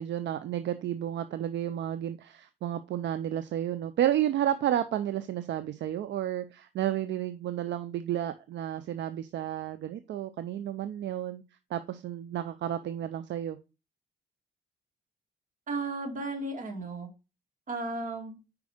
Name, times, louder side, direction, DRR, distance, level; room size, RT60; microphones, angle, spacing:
voice 1, 0.0-11.4 11.7-13.6, right 11 dB, 65° right, 0.5 m, -31 dB
voice 2, 15.7-17.1 17.7-18.4, right 2 dB, 40° right, 2.1 m, -34 dB
5.2 x 4.7 x 4.9 m
cardioid pair, 90°, 20 cm